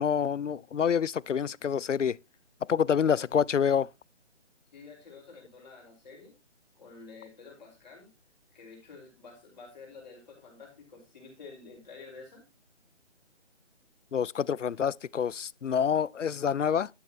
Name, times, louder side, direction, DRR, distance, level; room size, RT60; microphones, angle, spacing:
voice 1, 0.0-2.2 2.7-3.9 14.1-16.9, left 7 dB, 85° left, 0.5 m, -27 dB
voice 2, 4.7-6.3 6.7-8.1 8.5-12.4, left 4 dB, 40° left, 5.1 m, -49 dB
12.0 x 9.5 x 3.0 m
figure-of-eight pair, 145°, 36 cm